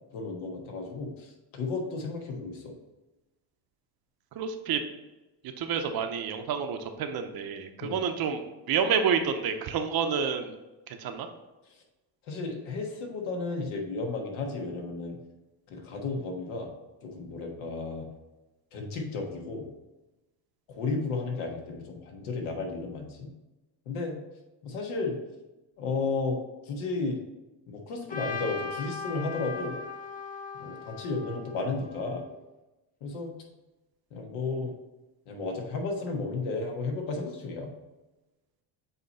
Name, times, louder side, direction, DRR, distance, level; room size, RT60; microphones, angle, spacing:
voice 1, 0.1-2.7 7.8-8.0 12.2-15.2 15.7-16.7 17.0-18.1 18.7-19.7 20.7-23.3 23.8-24.2 24.6-25.2 25.8-27.2 27.7-29.8 30.6-32.2 33.0-33.3 34.1-34.7 35.3-37.7, left 3 dB, 70° left, 1 dB, 1.5 m, -33 dB
voice 2, 4.3-4.8 5.6-10.5 10.9-11.3, right 6 dB, 45° right, 7 dB, 0.7 m, -29 dB
Trumpet, 28.1-32.2, left 5 dB, 15° left, 0.7 m, -39 dB
7.9 x 2.9 x 4.1 m, 1.0 s
cardioid pair, 110°, 50 cm